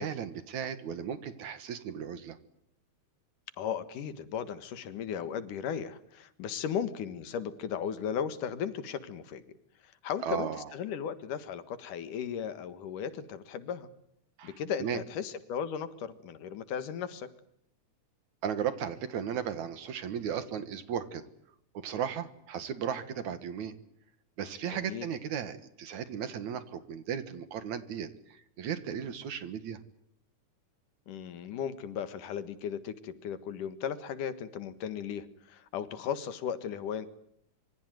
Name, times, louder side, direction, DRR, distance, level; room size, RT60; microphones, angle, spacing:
voice 1, 0.0-2.4 10.2-10.7 14.4-14.5 14.8-15.0 18.4-21.2 21.7-23.7 24.4-29.8, right 8 dB, 70° right, 12 dB, 2.8 m, -35 dB
voice 2, 3.6-9.4 9.8-13.9 14.4-17.3 24.7-25.1 31.1-37.1, left 8 dB, 85° left, 13 dB, 3.2 m, -36 dB
26.0 x 24.5 x 9.3 m, 0.72 s
omnidirectional pair, 3.6 m